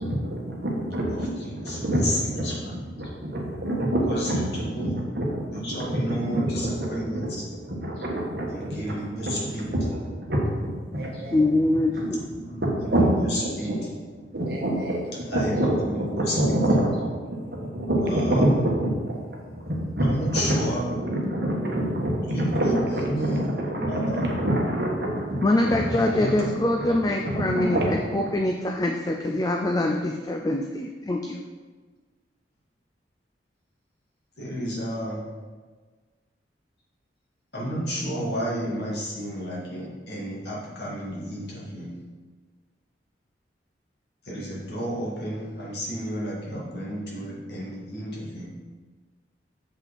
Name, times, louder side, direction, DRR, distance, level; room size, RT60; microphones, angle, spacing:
voice 1, 0.0-7.3 7.6-10.0 10.3-11.7 11.9-13.5 14.2-15.0 15.3-19.1 19.5-28.2, right 1 dB, 55° right, -2 dB, 1.5 m, -27 dB
voice 2, 1.1-2.8 4.0-5.0 5.5-7.5 8.0-8.1 8.5-9.8 11.1-11.2 12.4-13.9 15.1-17.0 18.0-18.7 20.0-20.9 22.2-23.6 23.9-24.3 25.6-26.6 34.4-35.3 37.5-41.9 44.2-48.5, equal, 65° left, -5 dB, 2.2 m, -32 dB
voice 3, 11.3-12.2 25.4-31.4, left 1 dB, 20° left, 2 dB, 0.4 m, -24 dB
7.5 x 5.5 x 4.2 m, 1.4 s
head